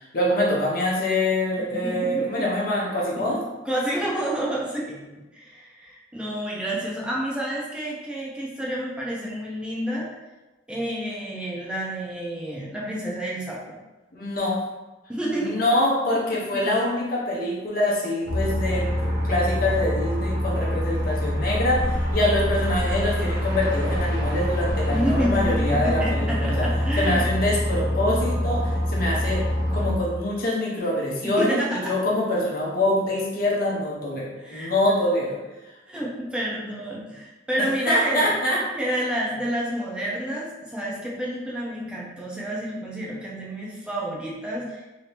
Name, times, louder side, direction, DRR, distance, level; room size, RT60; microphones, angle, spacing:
voice 1, 0.0-3.4 14.1-14.6 15.4-26.7 27.0-29.4 29.7-35.4 37.6-38.6, left 1 dB, 50° left, -4 dB, 0.8 m, -25 dB
voice 2, 1.6-2.5 3.2-3.3 3.6-5.0 5.3-10.1 10.7-13.8 15.1-15.6 16.5-16.8 24.9-27.3 31.2-31.9 34.4-35.0 35.9-38.3 38.8-44.8, right 1 dB, 5° right, -5 dB, 0.7 m, -29 dB
sound 1, 18.2-29.9, equal, 80° right, 1.1 m, -25 dB
2.9 x 2.7 x 3.3 m, 1.1 s
head